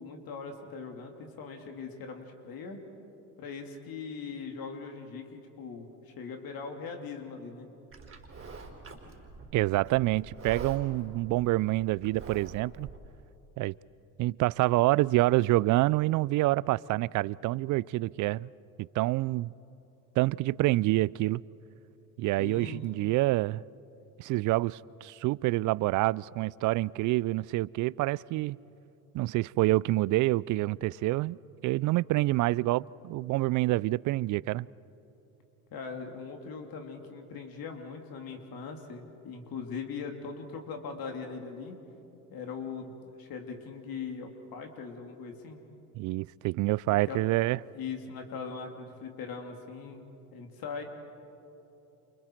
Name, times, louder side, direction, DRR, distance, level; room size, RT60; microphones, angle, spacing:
voice 1, 0.0-2.8 3.4-7.7 22.4-22.9 35.7-41.8 42.3-45.6 47.1-47.2 47.7-50.0 50.3-50.8, left 5 dB, 50° left, 2.8 m, -40 dB
Livestock farm animals working animals, 7.9-13.0, right 4 dB, 30° right, 4.2 m, -45 dB
voice 2, 9.5-12.9 13.6-13.7 14.2-18.5 18.8-19.5 20.2-21.4 22.2-23.6 24.2-28.6 29.1-31.4 31.6-34.7 46.0-47.6, right 18 dB, 45° right, 0.4 m, -27 dB
29.0 x 29.0 x 4.6 m
hypercardioid pair, 70°, 44 cm